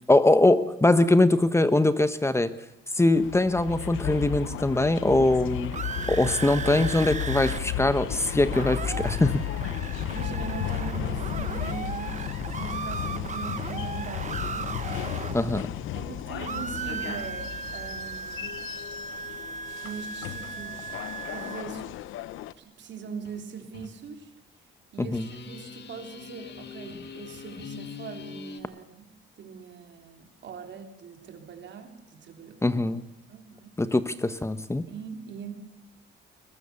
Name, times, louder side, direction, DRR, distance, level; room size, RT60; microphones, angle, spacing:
voice 1, 0.1-2.5 2.9-5.8 6.1-9.4 15.3-15.7 25.0-25.3 32.6-33.0 33.8-34.8, left 2 dB, 15° left, 12 dB, 1.2 m, -22 dB
sound 1, 3.1-22.5, left 11 dB, 90° left, 0.8 m, -34 dB
sound 2, 5.4-7.6 7.9-8.0 8.2-16.1 16.4-21.6, right 5 dB, 35° right, 1.3 m, -36 dB
voice 2, 9.8-14.8 15.9-18.6 19.8-20.9 21.3-21.9 22.6-24.3 24.9-32.8 33.3-33.8 34.9-35.5, right 6 dB, 65° right, 5 dB, 3.6 m, -41 dB
sound 3, 23.2-23.4 23.7-23.9 25.1-28.6, left 6 dB, 60° left, 2.2 m, -42 dB
22.0 x 21.0 x 7.0 m, 0.96 s
cardioid pair, 90°, 20 cm